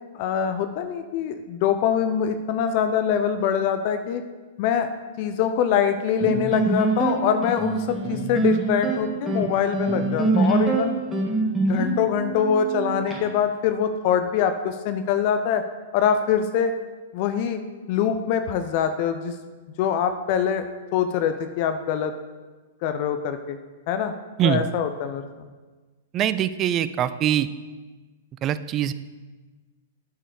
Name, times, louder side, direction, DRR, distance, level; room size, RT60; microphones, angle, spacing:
voice 1, 0.1-4.2 4.6-4.9 5.2-10.9 11.7-15.6 15.9-16.7 17.1-17.6 17.9-19.3 19.8-20.7 20.9-22.1 22.8-23.6 23.9-24.1 24.4-25.5, left 8 dB, 50° left, 9 dB, 0.6 m, -24 dB
sound 1, 6.2-13.2, right 2 dB, 10° right, 1.7 m, -24 dB
voice 2, 26.1-27.5 28.4-28.9, right 10 dB, 30° right, 14 dB, 0.4 m, -23 dB
8.9 x 4.7 x 6.5 m, 1.3 s
hypercardioid pair, 115°, 0 cm